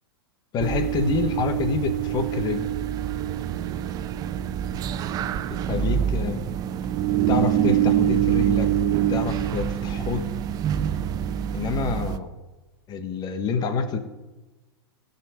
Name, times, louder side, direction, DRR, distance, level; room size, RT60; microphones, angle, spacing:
voice 1, 0.5-2.7 5.6-6.4 7.3-8.7 9.1-10.3 11.5-12.3 12.9-14.0, left 5 dB, 35° left, 8 dB, 1.6 m, -27 dB
sound 1, 0.6-12.2, right 10 dB, 30° right, 0.7 m, -25 dB
16.5 x 5.8 x 8.0 m, 1.1 s
hypercardioid pair, 100°, 13 cm